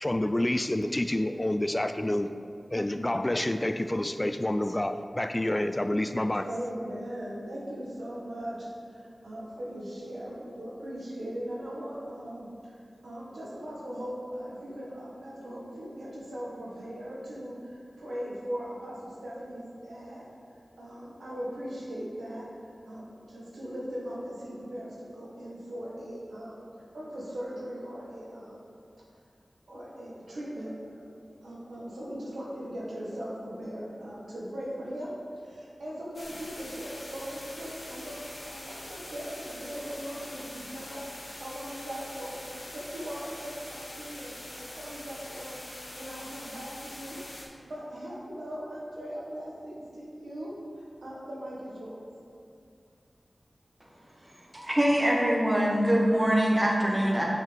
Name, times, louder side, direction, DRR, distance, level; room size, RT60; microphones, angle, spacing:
voice 1, 0.0-2.3 2.7-6.5, left 1 dB, 25° left, 9 dB, 0.3 m, -28 dB
voice 2, 6.4-20.3 20.8-22.5 22.9-26.6 26.9-28.6 29.7-31.1 31.4-41.0 41.4-45.6 46.0-52.1, equal, 85° right, -6 dB, 1.7 m, -39 dB
sound 1, 36.1-47.4, left 1 dB, 75° left, 1.3 m, -44 dB
voice 3, 54.5-57.2, equal, 20° right, -2 dB, 1.4 m, -23 dB
5.9 x 5.6 x 5.2 m, 2.3 s
cardioid pair, 45°, 0 cm